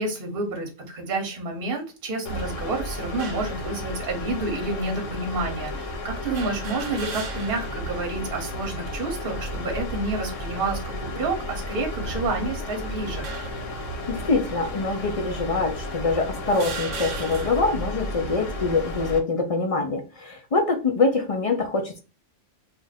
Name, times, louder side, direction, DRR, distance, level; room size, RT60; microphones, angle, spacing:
voice 1, 0.0-13.3, right 2 dB, 50° right, 1.0 m, -29 dB
sound 1, 2.3-19.2, left 1 dB, 80° left, 1.1 m, -33 dB
sound 2, 3.2-3.6 4.4-4.5 6.3-7.8 8.2-8.3 9.5-9.9 10.6-10.9 11.8-12.6 13.2-13.7 14.6-14.7 15.6-15.7 16.5-17.8, right 5 dB, 85° right, 1.0 m, -37 dB
voice 2, 14.1-22.0, left 3 dB, 50° left, 0.4 m, -24 dB
2.5 x 2.5 x 4.0 m
omnidirectional pair, 1.3 m